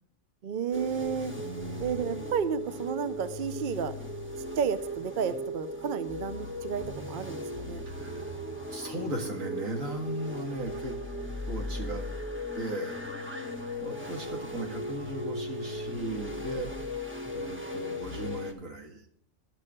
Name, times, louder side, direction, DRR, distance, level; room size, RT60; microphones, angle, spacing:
voice 1, 0.4-1.3 1.8-3.9 4.6-7.8, right 6 dB, 50° right, 12 dB, 0.7 m, -32 dB
sound 1, 0.7-18.5, left 1 dB, 10° right, 1.1 m, -37 dB
voice 2, 1.4-2.3 7.9-8.3 8.7-11.0 11.5-12.0 12.5-13.0 13.8-16.7 17.3-19.0, right 2 dB, 85° right, 2 dB, 2.2 m, -37 dB
11.5 x 6.6 x 7.5 m, 0.69 s
omnidirectional pair, 1.4 m